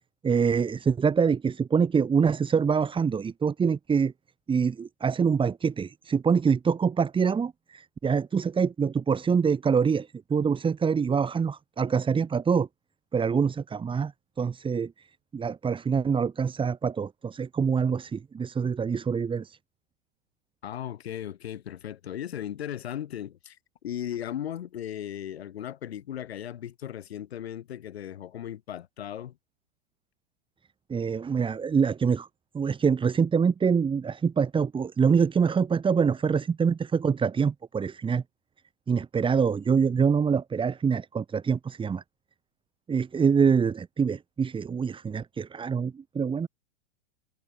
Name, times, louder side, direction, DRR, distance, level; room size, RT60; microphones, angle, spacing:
voice 1, 0.2-4.1 4.5-12.7 13.1-14.1 14.4-14.9 15.3-19.6 30.9-32.3 32.5-38.2 38.9-42.0 42.9-46.5, right 6 dB, 15° right, 2.2 m, -25 dB
voice 2, 20.6-23.6 23.8-29.4, left 10 dB, 75° left, 3.4 m, -36 dB
hypercardioid pair, 110°, 32 cm